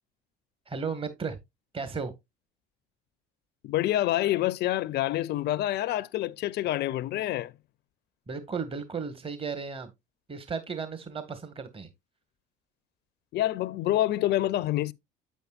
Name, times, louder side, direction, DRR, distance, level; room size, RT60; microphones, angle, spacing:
voice 1, 0.7-1.4 1.7-2.1 8.3-9.9 10.3-11.9, right 5 dB, 25° right, 1.7 m, -34 dB
voice 2, 3.6-7.5 13.3-14.9, left 14 dB, 55° left, 0.6 m, -27 dB
9.2 x 8.1 x 2.5 m
supercardioid pair, 80°, 20 cm